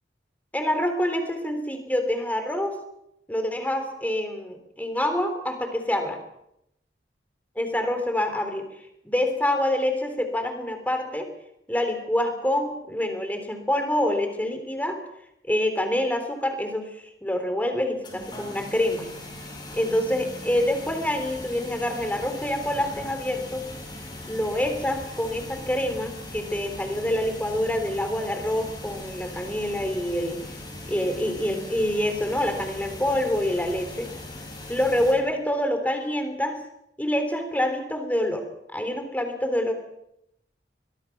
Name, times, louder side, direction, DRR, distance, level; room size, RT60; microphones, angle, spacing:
voice 1, 0.5-2.8 3.3-6.2 7.6-8.7 9.0-11.3 11.7-15.0 15.5-19.1 19.7-23.7 24.3-30.4 30.9-34.1 34.7-36.6 37.0-38.5 38.7-39.7, left 1 dB, 10° left, 6 dB, 3.5 m, -26 dB
sound 1, 18.0-35.1, left 1 dB, 25° left, 7.3 m, -39 dB
23.0 x 22.0 x 6.0 m, 0.79 s
head